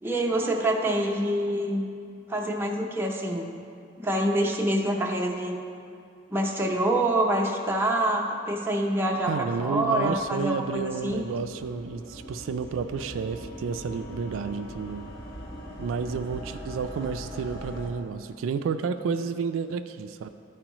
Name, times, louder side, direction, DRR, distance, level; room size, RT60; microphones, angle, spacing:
voice 1, 0.0-1.9 2.3-3.5 4.0-5.5 6.3-11.2, right 1 dB, 10° right, -1 dB, 0.6 m, -26 dB
sound 1, 8.4-17.9, equal, 55° left, 1.1 m, -42 dB
voice 2, 9.3-15.0 15.8-20.3, right 5 dB, 90° right, 9 dB, 0.3 m, -31 dB
12.5 x 4.6 x 3.0 m, 2.4 s
head